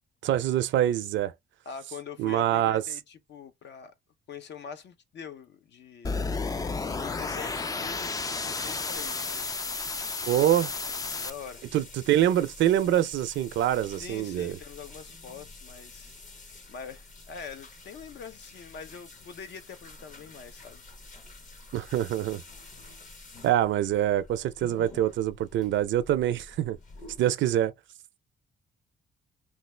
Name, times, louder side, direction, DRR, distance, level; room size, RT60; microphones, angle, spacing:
voice 1, 0.2-1.3 2.2-2.8 10.3-10.7 11.7-14.6 21.7-22.4 23.4-26.8 27.2-27.7, right 12 dB, 70° right, 0.5 m, -25 dB
voice 2, 1.7-3.9 4.3-6.2 6.9-9.5 10.8-11.7 13.9-16.1 16.7-20.8 21.7-21.8, left 6 dB, 60° left, 0.7 m, -44 dB
sound 1, 6.0-11.3, left 4 dB, 20° left, 0.3 m, -32 dB
sound 2, 8.9-27.2, left 3 dB, 40° left, 1.0 m, -49 dB
3.2 x 2.4 x 3.2 m
cardioid pair, 90°, 20 cm